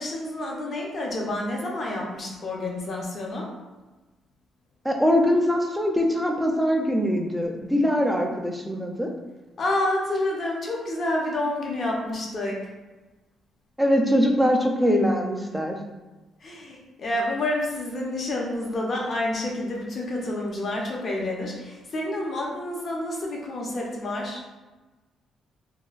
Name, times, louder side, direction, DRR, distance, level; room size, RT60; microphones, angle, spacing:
voice 1, 0.0-3.5 9.6-12.6 16.4-24.4, left 1 dB, 45° left, -1 dB, 0.7 m, -29 dB
voice 2, 4.8-9.1 13.8-15.8, equal, ahead, 1 dB, 0.4 m, -22 dB
3.0 x 2.2 x 2.4 m, 1.2 s
cardioid pair, 90°, 0 cm